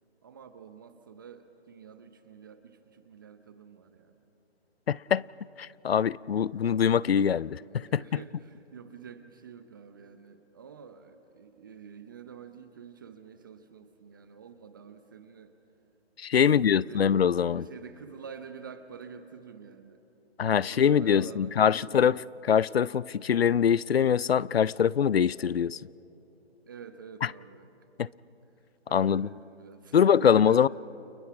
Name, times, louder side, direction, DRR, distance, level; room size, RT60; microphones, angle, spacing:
voice 1, 0.2-4.2 7.3-15.5 16.4-20.0 20.6-22.2 26.7-27.7 28.9-30.7, right 6 dB, 20° right, 0.7 m, -48 dB
voice 2, 4.9-5.2 5.6-8.0 16.2-17.6 20.4-25.8 28.0-28.1 28.9-29.3 29.9-30.7, left 8 dB, 65° left, 0.5 m, -23 dB
30.0 x 28.5 x 4.7 m
figure-of-eight pair, 150°, 32 cm